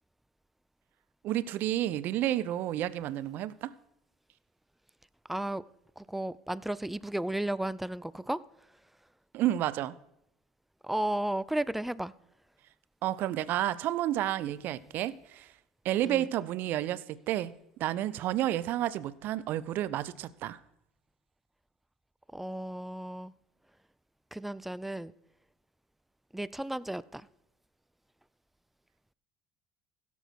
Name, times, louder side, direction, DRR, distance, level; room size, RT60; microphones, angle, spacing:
voice 1, 1.2-3.7 9.3-9.9 13.0-15.5 15.8-17.5 17.8-20.6, right 13 dB, 60° right, 18 dB, 0.5 m, -31 dB
voice 2, 5.2-5.7 6.0-8.9 10.8-12.1 16.0-16.3 22.3-23.3 24.3-25.1 26.3-27.3, right 1 dB, 5° right, 19 dB, 0.4 m, -34 dB
16.0 x 7.0 x 4.6 m, 0.82 s
hypercardioid pair, 85°, 4 cm